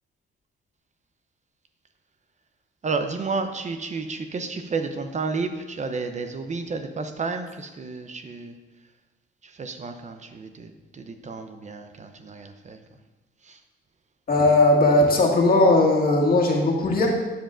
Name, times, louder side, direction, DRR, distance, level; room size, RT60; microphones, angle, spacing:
voice 1, 2.8-8.5 9.6-12.8 13.5-13.6, right 4 dB, 35° right, 7 dB, 0.7 m, -31 dB
voice 2, 14.3-17.1, left 2 dB, 50° left, -1 dB, 1.9 m, -18 dB
12.0 x 7.7 x 2.5 m, 1.2 s
cardioid pair, 90°, 20 cm